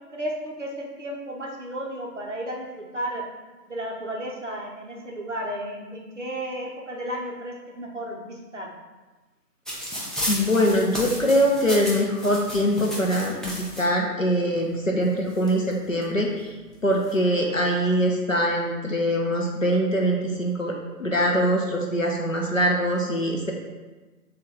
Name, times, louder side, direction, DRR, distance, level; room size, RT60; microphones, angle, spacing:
voice 1, 0.0-3.2 3.7-8.7, right 1 dB, 50° right, -2 dB, 0.5 m, -33 dB
sound 1, 9.7-13.8 14.7-14.8 15.1-16.0 16.7-17.1, equal, ahead, 0.4 m, -33 dB
voice 2, 10.3-16.5 16.8-23.5, equal, 55° left, -1 dB, 0.5 m, -23 dB
3.6 x 2.2 x 3.6 m, 1.2 s
figure-of-eight pair, 175°, 48 cm